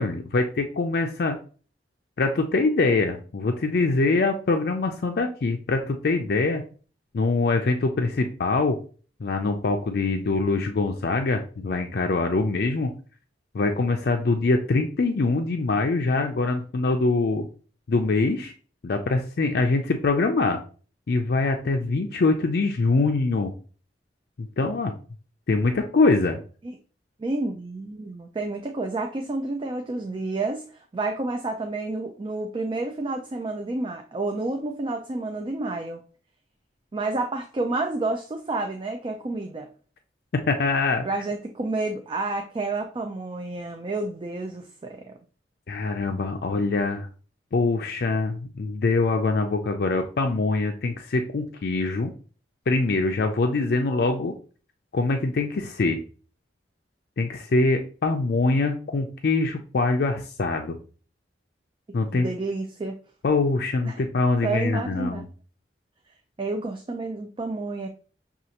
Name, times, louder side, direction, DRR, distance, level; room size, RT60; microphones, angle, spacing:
voice 1, 0.0-1.4 2.2-6.6 7.1-8.8 9.2-12.9 13.5-17.4 17.9-18.5 18.8-20.6 21.1-23.5 24.4-24.9 25.5-26.4 40.5-41.1 45.7-47.1 47.5-52.1 52.7-54.3 54.9-56.0 57.2-60.8 61.9-62.3 63.2-65.3, left 3 dB, 60° left, 4 dB, 0.4 m, -24 dB
voice 2, 27.2-36.0 36.9-39.7 41.0-45.2 62.1-62.9 63.9-64.0 64.4-65.3 66.4-67.9, right 2 dB, 30° right, 4 dB, 0.4 m, -30 dB
6.3 x 2.4 x 2.8 m, 0.39 s
head